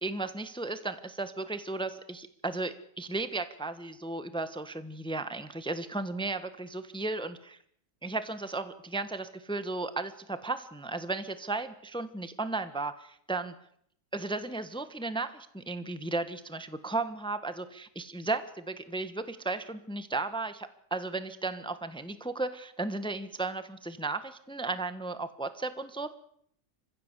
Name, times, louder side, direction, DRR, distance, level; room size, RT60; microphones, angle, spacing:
voice 1, 0.0-7.6 8.0-13.5 14.1-26.1, right 3 dB, 5° left, 11 dB, 1.2 m, -35 dB
27.5 x 15.5 x 8.2 m, 0.67 s
omnidirectional pair, 1.7 m